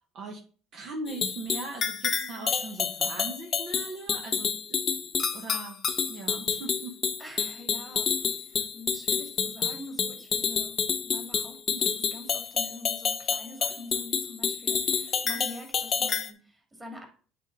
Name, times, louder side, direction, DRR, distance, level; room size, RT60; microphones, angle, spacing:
voice 1, 0.7-4.8 5.3-5.8 6.1-6.9, right 2 dB, 55° right, 1 dB, 1.3 m, -39 dB
sound 1, 1.1-16.3, left 6 dB, 40° left, 0.8 m, -29 dB
voice 2, 2.1-2.5 7.2-17.1, left 1 dB, 15° right, 0 dB, 2.6 m, -45 dB
8.2 x 3.8 x 4.0 m, 0.40 s
supercardioid pair, 105°, 0 cm